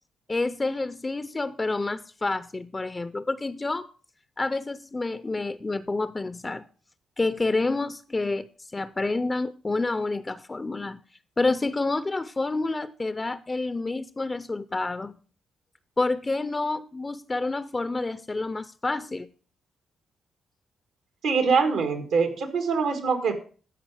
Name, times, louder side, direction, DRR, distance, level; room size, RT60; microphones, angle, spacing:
voice 1, 0.3-3.9 4.4-6.7 7.2-11.0 11.4-15.2 16.0-19.3, left 3 dB, 25° left, 14 dB, 0.5 m, -28 dB
voice 2, 21.2-23.3, right 5 dB, 80° right, 6 dB, 1.8 m, -24 dB
14.5 x 5.1 x 4.8 m, 0.41 s
supercardioid pair, 60°, 0 cm